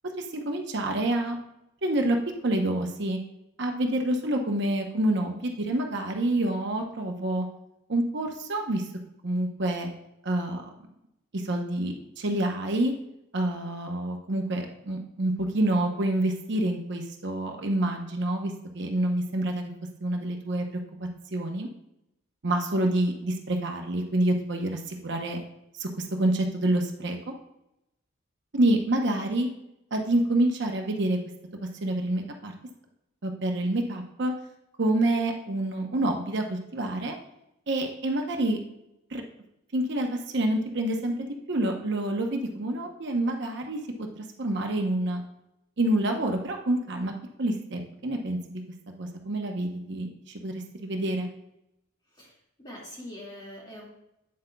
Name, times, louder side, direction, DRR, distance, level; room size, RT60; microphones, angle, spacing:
voice 1, 0.2-1.4 1.8-2.2 2.4-3.2 3.6-7.5 7.9-8.9 9.2-9.9 10.2-10.6 11.3-12.9 13.3-19.7 20.0-20.7 21.0-21.7 22.4-25.4 25.8-25.9 26.2-27.3 28.5-29.5 29.9-31.2 31.6-32.5 33.2-34.3 34.8-37.1 37.7-38.6 39.1-39.2 39.7-45.2 45.8-47.1 47.4-48.6 49.0-51.3, right 1 dB, 60° right, 3 dB, 0.8 m, -27 dB
voice 2, 52.6-53.8, left 1 dB, 20° left, -3 dB, 2.1 m, -42 dB
8.6 x 7.7 x 2.3 m, 0.84 s
head